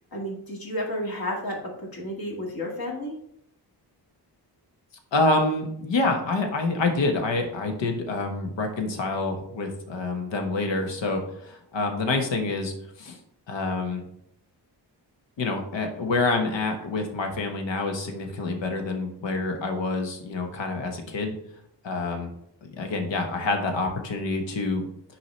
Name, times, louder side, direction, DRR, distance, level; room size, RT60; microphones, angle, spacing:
voice 1, 0.1-3.2, left 1 dB, 55° left, -1 dB, 2.0 m, -32 dB
voice 2, 5.1-13.2 13.5-14.0 15.4-21.3 21.8-22.3 22.6-24.9, left 3 dB, 85° left, 4 dB, 1.3 m, -27 dB
6.8 x 4.8 x 4.4 m, 0.74 s
wide cardioid pair, 150°, 43 cm